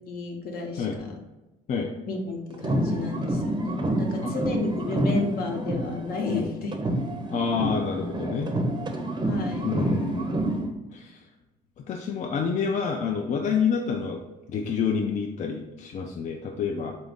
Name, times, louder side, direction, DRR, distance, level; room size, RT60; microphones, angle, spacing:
voice 1, 0.1-1.2 2.1-6.8 9.2-9.9, left 3 dB, 65° left, 2 dB, 0.8 m, -32 dB
sound 1, 2.5-6.4 6.7-10.7, right 1 dB, 25° right, 0.6 m, -28 dB
voice 2, 7.3-8.6 9.6-10.7 10.9-11.2 11.9-14.2 14.5-17.0, left 6 dB, 45° left, 2 dB, 0.4 m, -28 dB
3.9 x 2.5 x 3.5 m, 1.0 s
supercardioid pair, 80°, 17 cm